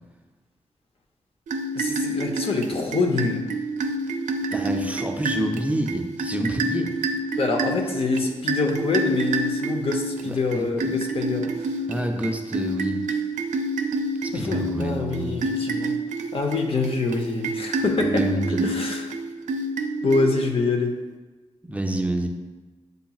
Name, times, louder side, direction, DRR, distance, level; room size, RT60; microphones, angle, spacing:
sound 1, 1.5-20.7, right 2 dB, 90° right, 0.4 m, -28 dB
voice 1, 1.7-3.4 7.3-11.7 14.3-16.0 16.3-18.2 18.6-19.1 20.0-20.9, left 3 dB, 50° left, 2 dB, 0.7 m, -25 dB
voice 2, 4.5-6.9 7.9-8.0 10.2-10.7 11.9-13.0 14.2-15.5 18.0-18.7 21.6-22.3, right 1 dB, 10° right, 3 dB, 0.4 m, -28 dB
7.9 x 2.8 x 2.3 m, 1.3 s
wide cardioid pair, 105°, 12 cm